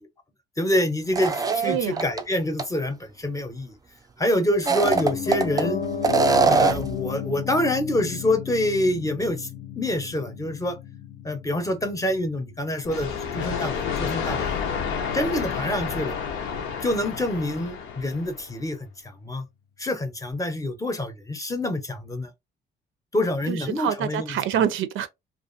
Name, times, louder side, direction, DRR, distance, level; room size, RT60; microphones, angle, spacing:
voice 1, 0.6-3.7 4.2-5.8 6.5-9.5 9.8-10.8 11.2-14.5 15.1-16.1 16.8-18.8 19.0-19.5 19.8-22.3 23.1-24.4, left 1 dB, 15° left, 0.7 m, -26 dB
sound 1, 1.1-2.2 2.6-2.7 4.5-5.6 6.0-6.9, right 4 dB, 20° right, 0.3 m, -21 dB
voice 2, 1.6-2.1 23.5-25.1, right 9 dB, 80° right, 0.5 m, -26 dB
Piano, 4.8-14.8 15.1-15.2, left 7 dB, 55° left, 0.7 m, -34 dB
sound 2, 12.8-18.6, left 6 dB, 90° left, 0.7 m, -30 dB
2.5 x 2.4 x 2.5 m
cardioid pair, 90°, 20 cm